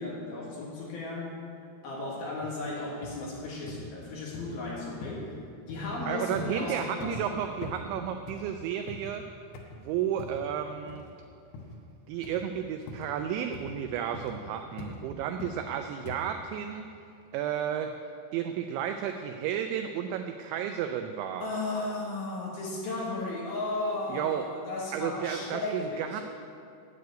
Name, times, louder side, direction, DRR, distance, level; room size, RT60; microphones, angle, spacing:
voice 1, 0.0-1.4 1.8-5.3 5.7-7.3 21.4-26.2, left 2 dB, 60° left, -4 dB, 3.1 m, -35 dB
sound 1, 2.4-2.5 3.0-3.2 3.7-3.9 4.3-4.6 5.0-5.3 5.7-5.9 6.4-6.6 7.0-7.3 7.6-7.8 8.3-9.2 9.5-9.8 10.2-10.5 10.9-11.1 11.5-11.8 12.2-12.5 12.9-13.1 13.5-13.8 14.1-14.4 14.8-15.0 15.4-15.6 16.1-16.3, left 2 dB, 80° left, 3.9 m, -42 dB
voice 2, 6.1-9.2 9.8-11.1 12.1-16.9 17.3-17.9 18.3-21.5 24.1-24.4 24.9-26.2, right 9 dB, 85° right, 6 dB, 2.6 m, -32 dB
9.5 x 8.0 x 9.4 m, 2.5 s
omnidirectional pair, 5.8 m